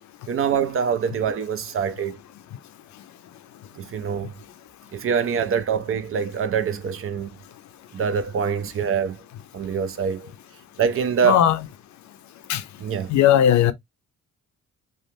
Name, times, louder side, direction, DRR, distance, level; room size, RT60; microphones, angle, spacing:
voice 1, 0.3-2.2 3.8-4.3 4.9-7.3 7.9-9.2 9.5-10.3 10.8-11.5 12.8-13.1, right 7 dB, 45° right, 0.5 m, -24 dB
voice 2, 11.2-11.6 12.5-12.6 13.1-13.7, left 10 dB, 70° left, 0.6 m, -17 dB
3.2 x 2.1 x 2.6 m
cardioid pair, 90°, 30 cm